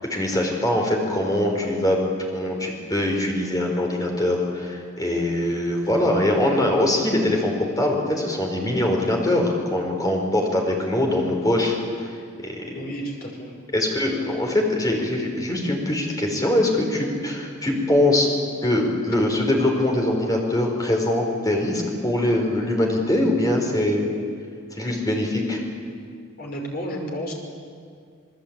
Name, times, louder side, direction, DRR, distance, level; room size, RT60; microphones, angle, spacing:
voice 1, 0.1-2.0 2.3-12.1 12.4-12.9 13.7-18.3 18.6-24.1 24.8-25.6, left 1 dB, 20° left, 1 dB, 4.7 m, -22 dB
voice 2, 12.7-13.5 26.4-27.3, equal, 50° left, 1 dB, 5.3 m, -31 dB
28.5 x 19.5 x 8.9 m, 2.2 s
head